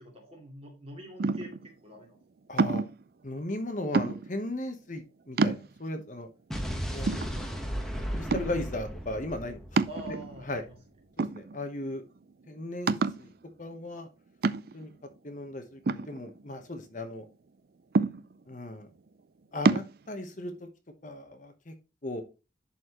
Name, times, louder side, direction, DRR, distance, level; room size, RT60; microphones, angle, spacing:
voice 1, 0.0-2.2 9.9-10.8, right 1 dB, 30° right, 0 dB, 2.7 m, -45 dB
sound 1, 1.2-1.7 2.6-3.0 3.9-4.4 5.0-5.1 5.4-6.0 6.6-6.7 7.1-7.8 8.3-8.7 9.8-10.5 11.2-11.8 12.2-12.3 12.9-13.3 14.4-14.9 15.9-16.8 17.9-18.5 19.6-19.9, right 4 dB, 55° right, 0.4 m, -28 dB
voice 2, 2.5-2.8 3.2-6.3 6.9-7.3 7.9-9.8 10.5-10.6 11.2-12.0 12.5-13.3 13.6-14.1 14.7-14.9 15.2-17.3 18.5-18.9 19.5-20.7 21.0-21.7 22.0-22.2, left 1 dB, 40° left, 7 dB, 1.0 m, -37 dB
Explosion, 6.5-10.6, equal, 5° left, 1.1 m, -35 dB
11.0 x 4.3 x 3.0 m, 0.29 s
head